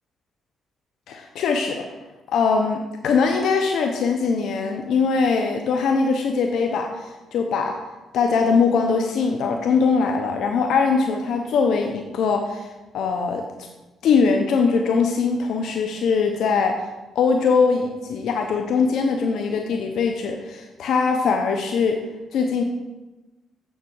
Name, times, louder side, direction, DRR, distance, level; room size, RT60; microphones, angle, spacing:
voice 1, 1.1-1.9 2.3-7.8 8.1-12.7 12.9-13.4 14.0-16.9 17.1-22.0 22.3-22.6, left 5 dB, 75° left, 3 dB, 1.0 m, -21 dB
7.5 x 7.2 x 7.2 m, 1.1 s
cardioid pair, 90°, 0 cm